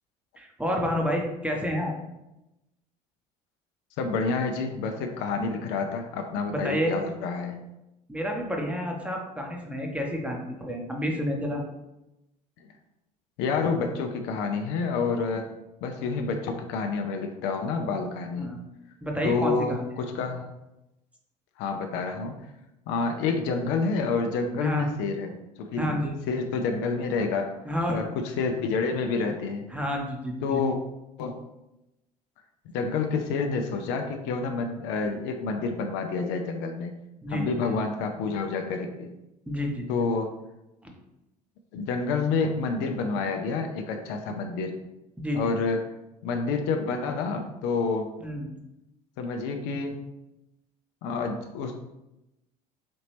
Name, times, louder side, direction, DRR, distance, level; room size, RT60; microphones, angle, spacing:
voice 1, 0.4-1.9 6.5-6.9 8.1-11.6 18.4-18.6 19.0-19.9 24.6-24.9 25.8-26.2 27.6-28.0 29.7-30.6 37.2-37.7 39.5-39.9 40.8-40.9 45.2-45.6 48.2-48.5, equal, 5° right, 0 dB, 0.9 m, -29 dB
voice 2, 4.0-7.6 13.4-15.5 15.8-18.5 19.2-20.5 21.6-22.4 22.9-25.3 25.6-27.5 27.9-29.6 30.4-30.8 31.2-31.4 32.7-36.9 37.3-39.1 39.9-40.3 41.7-44.8 45.3-45.8 46.2-48.1 49.2-50.0 51.0-51.7, left 4 dB, 60° left, 4 dB, 0.5 m, -28 dB
4.2 x 2.8 x 3.2 m, 0.92 s
hypercardioid pair, 70°, 21 cm